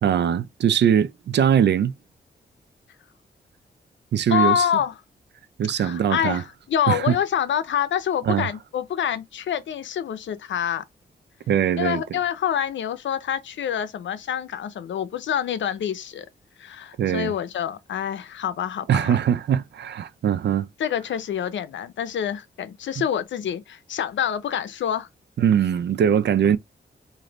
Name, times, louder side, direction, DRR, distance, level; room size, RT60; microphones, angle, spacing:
voice 1, 0.0-1.9 4.1-4.6 5.6-6.4 6.9-7.2 8.3-8.5 11.5-12.0 17.0-17.3 18.9-20.7 25.4-26.6, right 9 dB, 70° right, 0.4 m, -21 dB
voice 2, 4.3-4.9 5.8-10.8 11.8-16.3 16.6-19.2 20.8-25.1, left 9 dB, 85° left, 0.6 m, -26 dB
3.2 x 2.6 x 3.9 m
cardioid pair, 80°, 19 cm